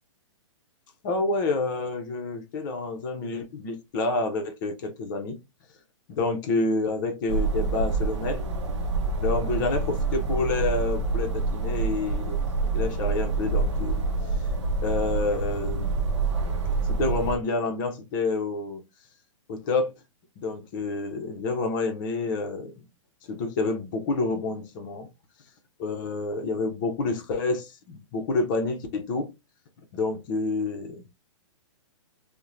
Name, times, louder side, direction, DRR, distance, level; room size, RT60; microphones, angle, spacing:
voice 1, 1.0-5.4 6.1-8.4 9.2-12.4 12.7-14.0 14.8-16.0 16.9-18.8 19.5-19.9 20.4-22.7 23.3-25.1 25.8-29.3 29.9-31.0, left 3 dB, 40° left, 0.6 m, -28 dB
sound 1, 7.3-17.4, right 3 dB, 65° right, 0.6 m, -27 dB
2.9 x 2.1 x 2.4 m
hypercardioid pair, 135°, 16 cm